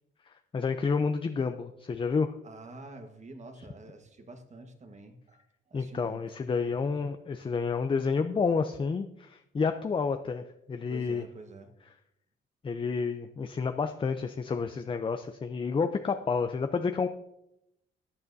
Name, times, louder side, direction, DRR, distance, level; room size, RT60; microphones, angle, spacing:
voice 1, 0.3-2.4 5.7-11.2 12.6-17.1, left 5 dB, 25° left, 8 dB, 0.5 m, -30 dB
voice 2, 2.4-6.2 6.7-6.8 7.4-7.5 10.9-11.7, right 2 dB, 35° right, 6 dB, 1.4 m, -48 dB
14.0 x 8.6 x 2.7 m, 0.83 s
cardioid pair, 90°, 20 cm